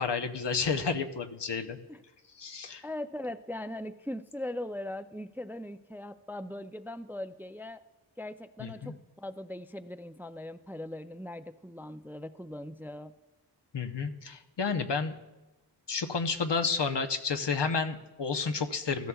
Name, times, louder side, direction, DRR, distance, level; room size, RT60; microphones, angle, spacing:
voice 1, 0.0-1.8 2.4-2.8 8.6-8.9 13.7-15.1 15.9-19.1, left 5 dB, 80° left, 6 dB, 0.9 m, -31 dB
voice 2, 2.8-7.8 8.2-13.1, left 1 dB, 5° right, 11 dB, 0.3 m, -40 dB
15.0 x 13.5 x 2.3 m, 1.0 s
wide cardioid pair, 55°, 42 cm